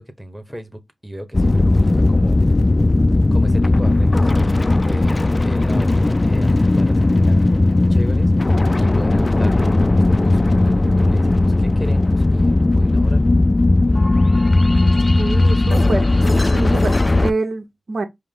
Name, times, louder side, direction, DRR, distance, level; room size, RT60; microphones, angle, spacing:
voice 1, 0.0-2.5 3.3-13.2, equal, 10° right, 1.3 m, -34 dB
sound 1, 1.3-17.3, left 2 dB, 35° left, 0.4 m, -16 dB
voice 2, 15.2-18.1, right 3 dB, 70° right, 0.9 m, -26 dB
4.9 x 2.1 x 3.6 m
cardioid pair, 40°, 0 cm